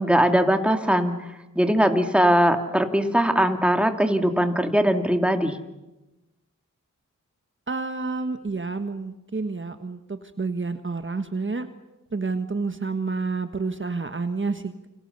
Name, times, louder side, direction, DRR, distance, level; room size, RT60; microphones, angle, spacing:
voice 1, 0.0-5.6, equal, 5° right, 6 dB, 2.3 m, -21 dB
voice 2, 7.7-11.7 12.1-14.9, right 4 dB, 40° right, 8 dB, 1.4 m, -29 dB
29.0 x 25.5 x 6.9 m, 1.0 s
wide cardioid pair, 75°, 31 cm